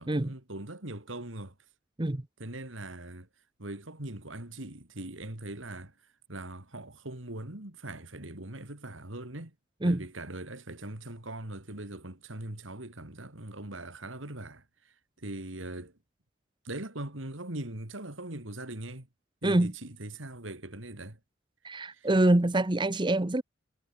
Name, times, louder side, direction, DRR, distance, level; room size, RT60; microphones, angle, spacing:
voice 1, 0.0-1.5 2.4-3.3 3.6-5.9 6.3-9.5 9.8-15.9 16.6-19.1 19.4-21.2 21.9-22.1, right 1 dB, 80° right, 3.5 m, -41 dB
voice 2, 21.6-23.4, right 1 dB, 25° right, 0.9 m, -25 dB
head